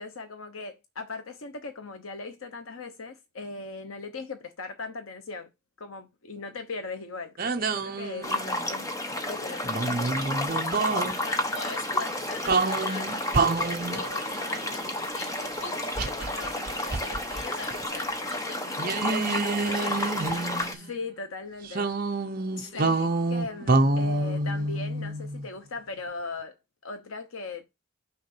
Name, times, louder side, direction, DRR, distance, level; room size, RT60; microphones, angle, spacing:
voice 1, 0.0-5.5 5.8-8.9 9.2-10.5 20.7-21.9 22.7-23.0 23.3-27.7, left 3 dB, 85° left, 0.9 m, -39 dB
sound 1, 7.4-8.7 9.6-11.1 12.5-14.1 16.0-17.4 17.7-17.8 18.8-20.9 21.7-25.5, right 3 dB, 45° right, 0.7 m, -27 dB
sound 2, 8.2-20.7, left 1 dB, 15° left, 0.8 m, -31 dB
voice 2, 11.1-13.7 13.9-20.9 22.3-23.1, left 3 dB, 60° left, 1.3 m, -42 dB
sound 3, 12.1-17.9, right 4 dB, 30° right, 1.4 m, -48 dB
5.8 x 3.8 x 6.0 m
head